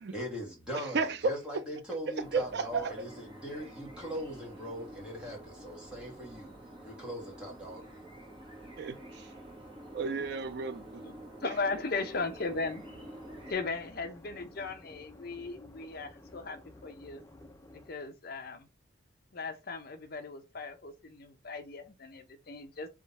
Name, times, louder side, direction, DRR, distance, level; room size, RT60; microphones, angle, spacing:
voice 1, 0.1-6.5 6.8-7.8, equal, 5° right, 1.9 m, -40 dB
voice 2, 0.7-1.4 2.3-3.0 8.8-9.3 9.9-11.0, right 4 dB, 55° right, 0.5 m, -33 dB
sound 1, 2.2-13.5, right 1 dB, 25° right, 1.4 m, -49 dB
voice 3, 11.4-12.8 13.5-16.6 16.8-17.2 17.7-18.7 19.3-22.9, left 3 dB, 50° left, 0.7 m, -37 dB
sound 2, 12.1-17.9, left 1 dB, 15° left, 0.6 m, -53 dB
3.6 x 3.4 x 4.1 m
head